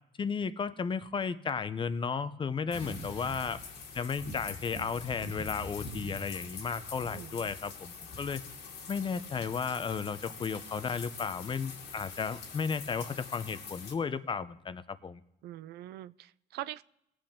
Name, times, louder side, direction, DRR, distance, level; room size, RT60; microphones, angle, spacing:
voice 1, 0.2-3.6 3.9-8.4 8.9-15.2, left 5 dB, 30° left, 13 dB, 0.6 m, -34 dB
sound 1, 2.7-13.9, left 4 dB, 90° left, 2.4 m, -44 dB
voice 2, 7.1-7.5 15.4-16.8, right 14 dB, 75° right, 17 dB, 0.4 m, -43 dB
20.0 x 7.7 x 3.6 m, 0.85 s
cardioid pair, 110°, 17 cm